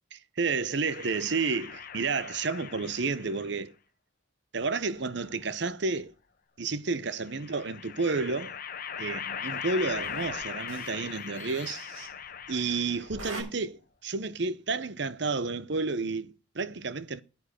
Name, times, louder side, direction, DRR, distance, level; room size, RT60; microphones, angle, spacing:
voice 1, 0.4-3.7 4.5-6.1 6.6-8.6 9.0-11.8 12.5-17.2, right 4 dB, 55° right, 0.8 m, -31 dB
sound 1, 0.9-3.5 4.6-5.6 7.2-13.2, left 7 dB, 45° left, 1.1 m, -40 dB
sound 2, 9.7-11.0 11.3-12.1 12.9-13.4, right 3 dB, 85° right, 6.2 m, -42 dB
9.8 x 9.6 x 6.4 m
head